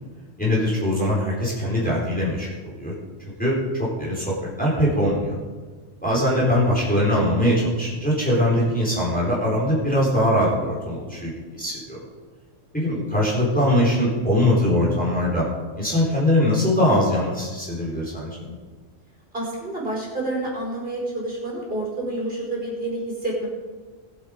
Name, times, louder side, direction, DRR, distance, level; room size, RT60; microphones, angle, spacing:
voice 1, 0.4-2.9 3.4-5.4 6.0-12.0 12.7-15.5 15.8-18.5, left 1 dB, 5° left, -6 dB, 4.2 m, -22 dB
voice 2, 19.3-23.5, right 1 dB, 45° right, -5 dB, 5.5 m, -28 dB
21.5 x 8.2 x 5.0 m, 1.4 s
omnidirectional pair, 1.3 m